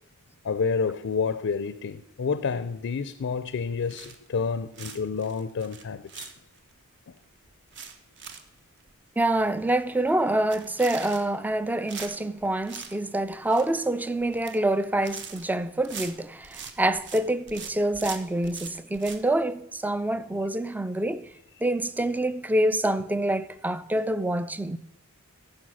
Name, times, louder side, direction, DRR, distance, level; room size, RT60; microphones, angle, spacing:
voice 1, 0.4-6.3, left 5 dB, 60° left, 0.4 m, -29 dB
sound 1, 3.9-4.4 4.7-6.7 7.2-7.3 7.5-8.5 8.8-8.9 9.3-9.4 9.6-9.9 10.4-11.5 11.9-13.0 13.2-13.8 14.2-14.6 14.8-17.2 17.5-19.2, right 6 dB, 55° right, 0.9 m, -41 dB
voice 2, 9.2-21.3 21.6-24.8, right 1 dB, 10° right, 0.3 m, -26 dB
14.0 x 5.4 x 6.2 m
head